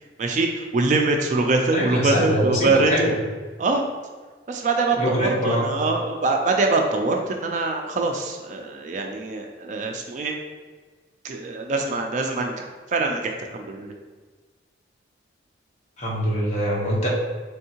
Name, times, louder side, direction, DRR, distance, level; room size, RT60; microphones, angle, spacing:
voice 1, 0.2-2.9 3.6-3.8 4.5-10.4 11.2-13.9, right 3 dB, 40° right, 3 dB, 0.3 m, -24 dB
voice 2, 1.7-3.1 5.0-5.7 16.0-17.1, equal, 35° left, -5 dB, 1.0 m, -23 dB
4.4 x 3.5 x 2.8 m, 1.4 s
head